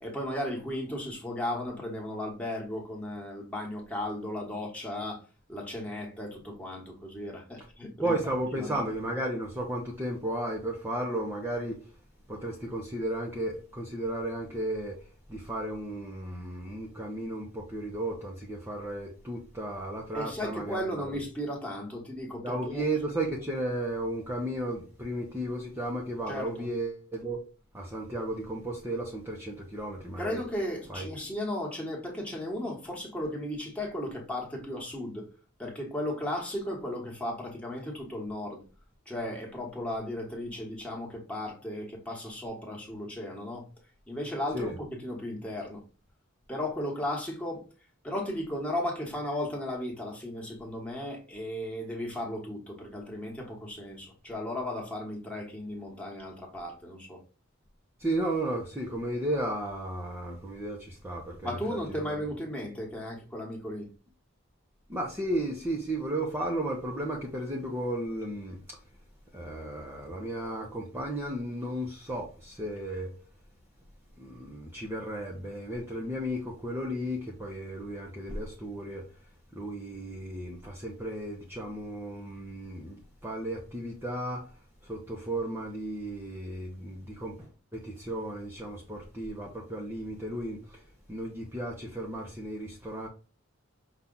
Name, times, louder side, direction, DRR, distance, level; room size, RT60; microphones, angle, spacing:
voice 1, 0.0-5.2 5.5-8.1 8.5-8.8 20.1-22.8 26.3-26.7 30.2-35.3 35.6-38.6 39.1-43.7 44.1-45.8 46.5-47.6 48.0-57.2 61.4-63.9, left 1 dB, 5° left, 1.2 m, -35 dB
voice 2, 8.0-11.9 12.3-21.2 22.4-27.4 27.7-30.4 30.9-31.1 44.5-44.7 58.0-62.2 64.9-68.8 69.3-73.1 74.2-79.1 79.5-93.1, right 1 dB, 10° right, 0.7 m, -34 dB
5.6 x 2.4 x 3.9 m
head